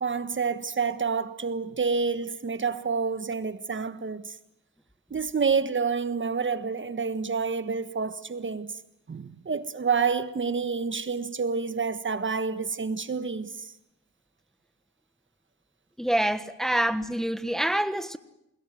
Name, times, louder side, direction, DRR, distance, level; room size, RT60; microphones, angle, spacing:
voice 1, 0.0-4.3 5.1-8.7 9.1-13.7, right 5 dB, 35° right, 1.5 m, -28 dB
voice 2, 16.0-18.2, right 1 dB, ahead, 1.3 m, -26 dB
28.5 x 21.5 x 7.9 m
cardioid pair, 75°, 33 cm